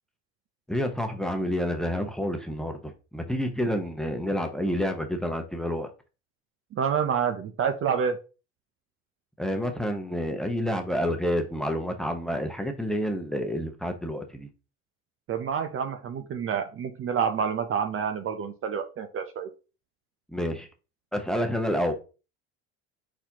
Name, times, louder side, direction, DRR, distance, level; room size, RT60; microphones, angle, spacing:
voice 1, 0.7-5.9 9.4-14.5 20.3-20.7 21.1-21.9, equal, ahead, 0.9 m, -29 dB
voice 2, 6.7-8.2 15.3-19.5, right 7 dB, 35° right, 0.6 m, -28 dB
4.3 x 4.2 x 2.8 m
supercardioid pair, 90°, 35 cm